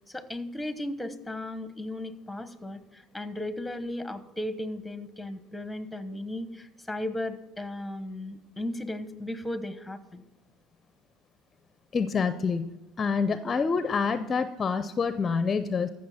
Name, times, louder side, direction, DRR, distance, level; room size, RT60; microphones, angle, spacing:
voice 1, 0.1-10.2, left 1 dB, 5° left, 12 dB, 1.0 m, -36 dB
voice 2, 11.9-12.7 13.0-15.9, left 5 dB, 30° left, 12 dB, 0.6 m, -27 dB
14.5 x 6.3 x 4.2 m, 1.1 s
supercardioid pair, 85°, 0 cm